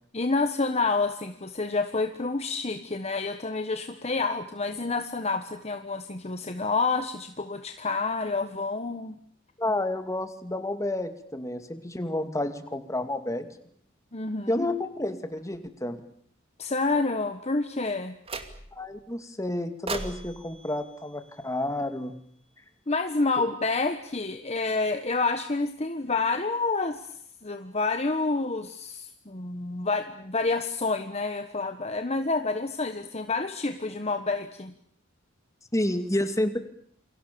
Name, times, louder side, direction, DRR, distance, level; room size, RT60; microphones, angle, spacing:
voice 1, 0.1-9.1 14.1-14.7 16.6-18.2 22.9-27.2 27.4-34.7, left 3 dB, 35° left, 8 dB, 1.4 m, -28 dB
voice 2, 9.6-13.5 14.5-16.0 18.7-22.1 35.7-36.6, left 1 dB, 15° left, 8 dB, 2.5 m, -30 dB
sound 1, 18.3-18.9 19.9-22.1, right 3 dB, 30° right, 2.4 m, -39 dB
28.5 x 24.0 x 7.0 m, 0.64 s
head